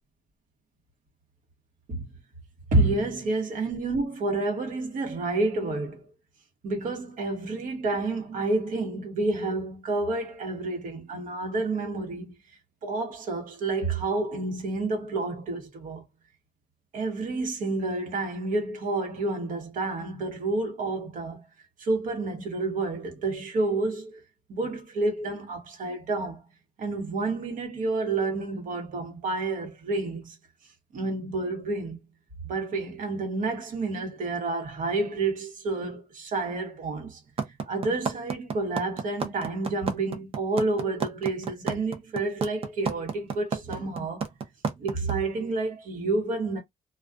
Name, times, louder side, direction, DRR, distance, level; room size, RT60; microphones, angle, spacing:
voice 1, 2.7-6.1 6.6-12.3 12.8-16.0 16.9-21.4 21.8-24.2 24.5-26.4 26.8-30.4 30.9-32.0 32.4-37.2 37.7-44.2 44.8-46.6, right 2 dB, 75° right, 1.1 m, -29 dB
sound 1, 37.4-45.1, right 5 dB, 45° right, 0.6 m, -29 dB
2.4 x 2.3 x 2.4 m
cardioid pair, 110°, 14 cm